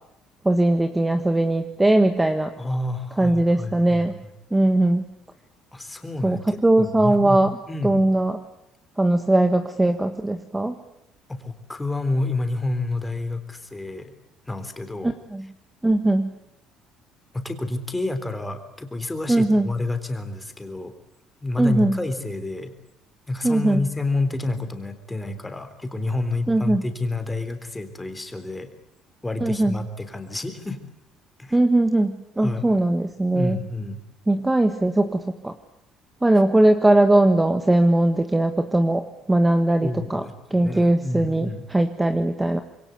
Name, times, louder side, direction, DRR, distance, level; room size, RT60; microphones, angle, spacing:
voice 1, 0.4-2.5 3.2-4.1 4.5-5.0 6.2-7.5 7.8-8.4 9.0-10.7 15.0-15.5 15.8-16.3 19.3-19.7 21.6-22.0 23.4-23.8 26.5-26.8 29.4-29.8 31.5-33.6 34.3-35.5 36.2-40.2 40.5-42.6, right 1 dB, 10° right, 8 dB, 1.5 m, -20 dB
voice 2, 2.6-4.1 5.7-7.4 7.6-8.0 11.3-14.1 14.5-15.1 17.3-20.9 21.4-22.7 23.3-28.7 29.2-30.8 31.4-31.6 32.4-32.7 33.3-34.0 39.8-41.7, left 2 dB, 10° left, 8 dB, 3.6 m, -29 dB
26.5 x 22.0 x 8.3 m, 0.81 s
cardioid pair, 120°, 0 cm